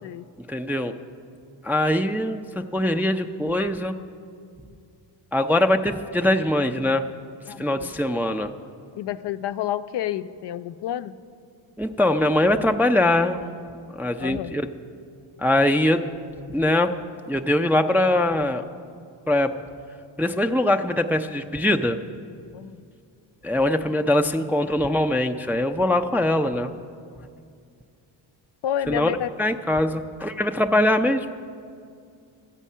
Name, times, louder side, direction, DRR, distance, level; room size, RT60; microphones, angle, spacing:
voice 1, 0.5-0.9 1.6-3.9 5.3-7.0 7.6-8.5 11.8-13.4 14.0-14.7 15.4-16.1 16.5-16.9 17.3-18.6 19.3-19.5 20.2-22.0 23.4-26.7 28.9-29.1 29.4-31.3, left 1 dB, 5° right, 5 dB, 0.3 m, -22 dB
voice 2, 7.5-7.9 9.0-11.1 14.2-14.5 22.5-22.8 28.6-29.3, left 11 dB, 60° left, 12 dB, 0.5 m, -29 dB
13.0 x 8.2 x 5.5 m, 2.3 s
cardioid pair, 70°, 48 cm